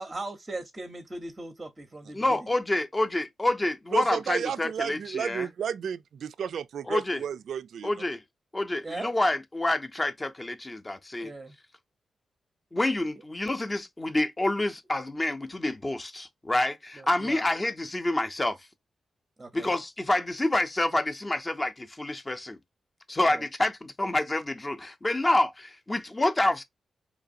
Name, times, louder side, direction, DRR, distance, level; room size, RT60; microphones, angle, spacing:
voice 1, 0.0-2.4 8.8-9.1 11.2-11.5 17.0-17.4 19.4-19.7 23.3-23.4, right 2 dB, 20° right, 0.6 m, -39 dB
voice 2, 2.1-5.5 6.9-7.2 7.8-8.2 8.5-11.3 12.7-18.6 19.5-22.6 23.1-26.6, left 1 dB, 15° left, 0.6 m, -28 dB
voice 3, 3.9-7.9, right 8 dB, 80° right, 0.3 m, -32 dB
4.8 x 3.0 x 2.5 m
wide cardioid pair, 155°, 0 cm